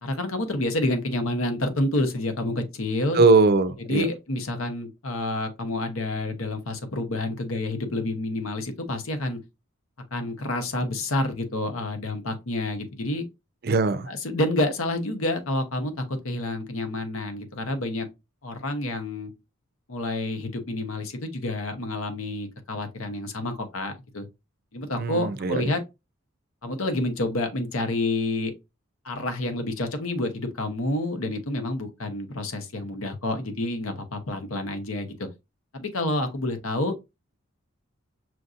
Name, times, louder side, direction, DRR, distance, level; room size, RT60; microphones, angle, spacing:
voice 1, 0.0-3.2 3.8-9.4 10.1-13.2 14.1-18.1 18.4-19.3 19.9-24.3 24.7-25.8 26.6-28.5 29.0-35.3 35.7-36.9, left 1 dB, 85° left, 0.9 m, -28 dB
voice 2, 3.1-4.0 13.6-14.1 25.0-25.6, right 3 dB, 45° right, 0.4 m, -20 dB
6.0 x 2.6 x 2.4 m
head